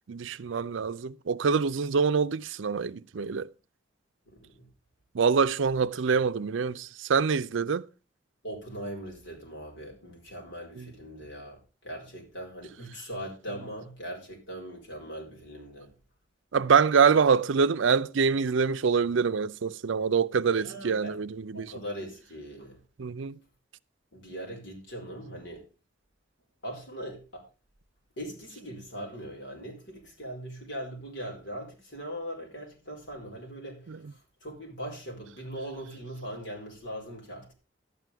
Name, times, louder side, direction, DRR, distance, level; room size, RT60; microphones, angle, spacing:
voice 1, 0.1-3.5 5.1-7.8 10.8-10.9 16.5-21.7 23.0-23.4 33.9-34.0, right 5 dB, 80° right, 0.5 m, -25 dB
voice 2, 4.3-4.7 8.4-15.9 20.6-21.1 21.5-22.8 24.1-25.6 26.6-27.4 28.2-33.9 34.4-37.5, equal, 70° left, 4.3 m, -40 dB
11.5 x 9.1 x 3.5 m
head